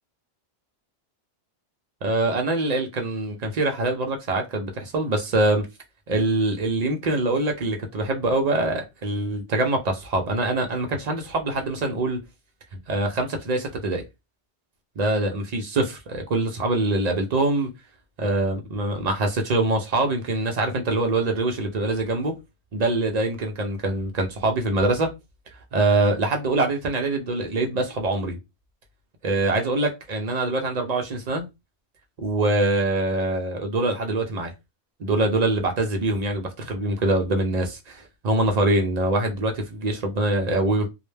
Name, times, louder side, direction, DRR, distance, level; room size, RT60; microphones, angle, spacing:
voice 1, 2.0-5.7 6.1-12.2 12.9-14.0 15.0-17.7 18.2-22.3 22.7-25.1 25.7-28.4 29.2-31.4 32.2-34.5 35.0-40.9, right 2 dB, 55° right, 0.4 m, -24 dB
2.2 x 2.1 x 3.1 m
omnidirectional pair, 1.2 m